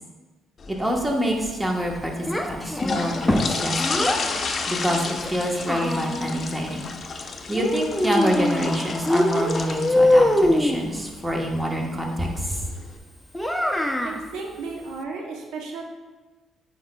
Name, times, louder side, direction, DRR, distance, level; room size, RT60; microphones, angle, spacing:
sound 1, 0.6-13.0, left 4 dB, 45° left, 0.6 m, -33 dB
voice 1, 0.7-4.0 4.7-6.9 7.5-12.7, equal, 10° right, 0 dB, 1.2 m, -26 dB
Child speech kid speaking, 2.3-4.3 5.2-6.4 7.5-8.7 9.1-10.8 13.3-14.2, left 1 dB, 5° left, 0.6 m, -22 dB
voice 2, 14.0-15.8, right 4 dB, 75° right, 1 dB, 0.8 m, -34 dB
8.6 x 4.9 x 2.3 m, 1.3 s
supercardioid pair, 70°, 0 cm